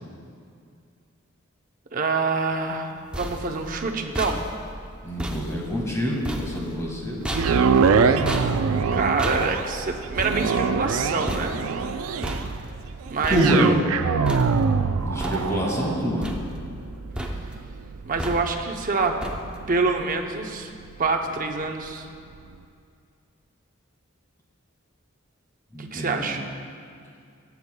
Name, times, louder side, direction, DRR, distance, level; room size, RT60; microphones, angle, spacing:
voice 1, 1.9-4.4 7.3-8.1 8.9-11.6 13.1-13.8 18.1-19.2 19.7-20.7 21.0-22.1 25.8-26.4, right 4 dB, 40° right, 3 dB, 0.7 m, -26 dB
sound 1, 2.8-14.0 14.2-14.9 15.2-15.8 16.2-16.9 17.1-17.7 18.2-18.7 19.2-19.7, equal, 5° right, 0.6 m, -34 dB
voice 2, 5.0-7.2 13.3-13.6 15.0-16.3 25.7-26.4, equal, 15° left, -2 dB, 1.6 m, -26 dB
sound 2, 7.3-21.5 22.0-22.1, right 5 dB, 80° right, 0.4 m, -25 dB
18.5 x 8.1 x 2.2 m, 2.3 s
head